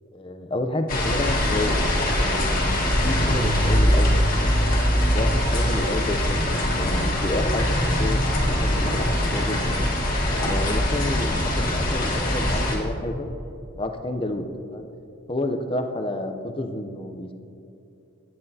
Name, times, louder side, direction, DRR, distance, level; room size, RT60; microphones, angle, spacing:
voice 1, 0.1-1.8 2.1-2.7 3.0-4.5 5.0-8.2 8.5-9.8 10.4-13.3 13.7-14.9 15.3-17.3, left 1 dB, 25° left, 6 dB, 0.5 m, -30 dB
sound 1, 0.9-12.8, left 1 dB, 40° left, 1.6 m, -22 dB
16.0 x 9.8 x 2.8 m, 2.8 s
head